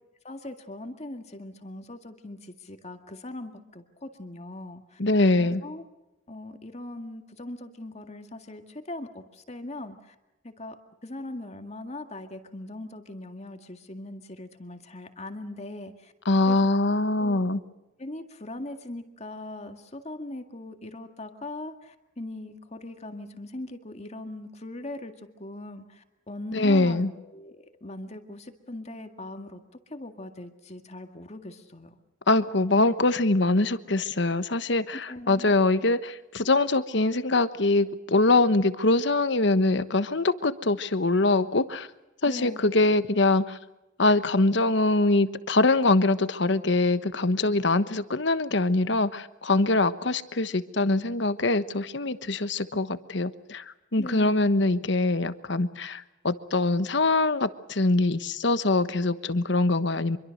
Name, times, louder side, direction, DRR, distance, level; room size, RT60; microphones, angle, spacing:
voice 1, 0.2-5.0 5.4-5.9 6.3-10.2 10.4-10.8 11.0-16.1 16.5-16.6 17.2-17.6 18.0-29.6 29.9-32.0 34.9-35.6 42.2-42.7 54.0-54.5, left 1 dB, 35° left, 6 dB, 2.0 m, -40 dB
voice 2, 5.0-5.6 16.3-17.6 26.5-27.1 32.3-41.9 42.2-43.6 44.0-53.6 53.9-60.2, left 2 dB, 65° left, 12 dB, 1.2 m, -23 dB
25.5 x 23.5 x 6.6 m, 0.99 s
head